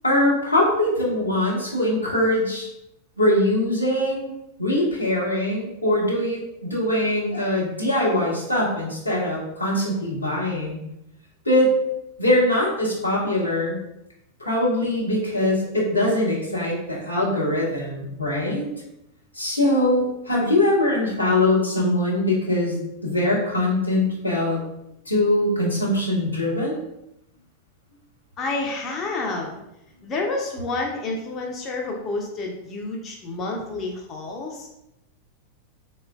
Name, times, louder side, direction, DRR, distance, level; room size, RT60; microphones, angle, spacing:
voice 1, 0.0-2.7 3.2-4.3 4.6-6.4 6.7-10.8 11.5-11.7 12.2-13.8 14.4-18.6 19.3-24.6 25.1-26.8, left 1 dB, 85° left, -5 dB, 0.8 m, -22 dB
voice 2, 28.4-29.6 30.0-34.7, left 3 dB, 30° left, -1 dB, 0.4 m, -29 dB
3.6 x 2.1 x 2.2 m, 0.84 s
figure-of-eight pair, 90°, 0 cm